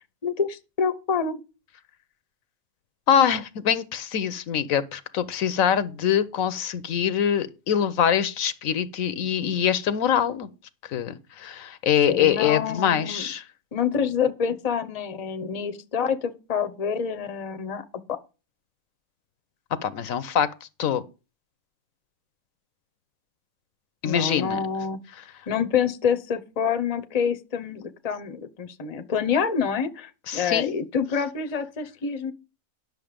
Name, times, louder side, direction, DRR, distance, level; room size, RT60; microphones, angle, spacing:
voice 1, 0.2-1.4 12.1-13.3 13.7-18.2 24.0-25.0 25.5-32.3, left 6 dB, 30° left, 0.8 m, -27 dB
voice 2, 3.1-10.5 10.8-13.4 19.8-20.5 20.8-21.0 24.0-24.6 30.3-30.8, left 9 dB, 75° left, 1.1 m, -24 dB
10.5 x 6.5 x 5.1 m
omnidirectional pair, 1.5 m